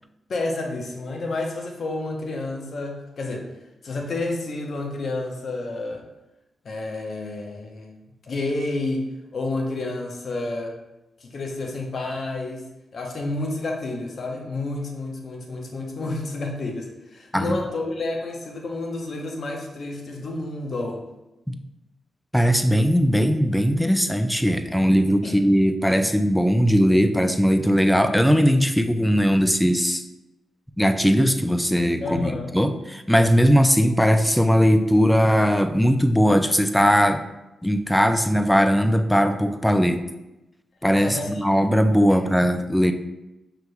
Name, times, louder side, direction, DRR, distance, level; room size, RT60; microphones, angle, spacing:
voice 1, 0.3-3.5 3.8-6.0 6.6-8.0 8.2-9.0 9.3-10.7 11.2-12.7 12.9-21.0 25.2-25.4 32.0-32.5 41.0-41.4 42.1-42.2, left 2 dB, 60° left, 1 dB, 0.8 m, -30 dB
voice 2, 22.3-30.0 30.8-37.3 37.6-40.0 40.8-42.9, equal, 5° left, 8 dB, 0.4 m, -19 dB
5.8 x 3.3 x 2.3 m, 0.96 s
supercardioid pair, 50°, 0 cm